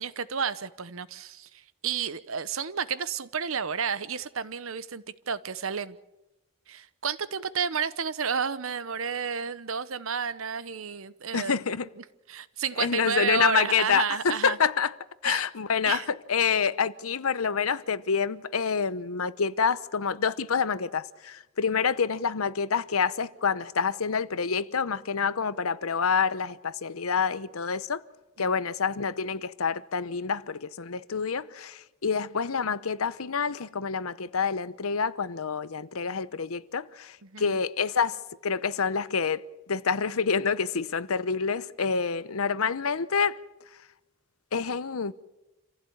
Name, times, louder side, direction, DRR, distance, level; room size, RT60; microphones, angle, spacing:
voice 1, 0.0-6.0 6.7-11.6 12.0-14.6 15.3-15.4 15.9-16.1 28.4-28.5 37.2-37.6, right 6 dB, 75° right, 0.9 m, -31 dB
voice 2, 11.3-11.9 12.8-14.9 15.2-28.0 28.4-39.4 39.7-43.4 44.5-45.1, left 6 dB, 90° left, 0.8 m, -27 dB
27.0 x 15.5 x 8.7 m
head